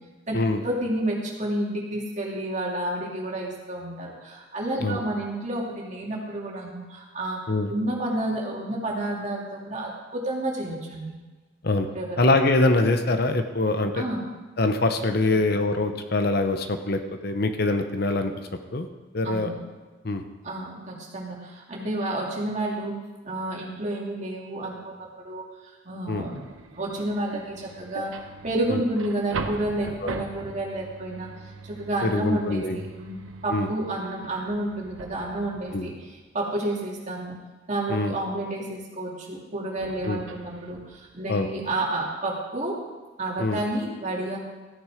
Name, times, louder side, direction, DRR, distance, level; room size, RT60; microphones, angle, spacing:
voice 1, 0.6-7.4 7.7-11.2 11.9-12.2 13.9-14.2 19.2-19.6 20.4-22.9 23.2-26.5 26.7-28.1 28.4-31.3 31.6-37.4 37.7-42.8 43.2-44.4, right 1 dB, 35° right, -3 dB, 2.7 m, -30 dB
voice 2, 12.2-14.0 14.6-18.3 18.7-18.9 19.1-19.5 20.0-20.2 26.1-26.3 28.7-28.8 32.0-32.8 33.5-33.7 35.7-35.9 37.9-38.1 40.0-40.2 41.3-41.5 43.4-43.6, left 2 dB, 55° left, 7 dB, 0.9 m, -24 dB
sound 1, 26.1-36.3 39.8-41.4, right 3 dB, 90° right, 0.9 m, -40 dB
14.5 x 9.4 x 5.0 m, 1.3 s
head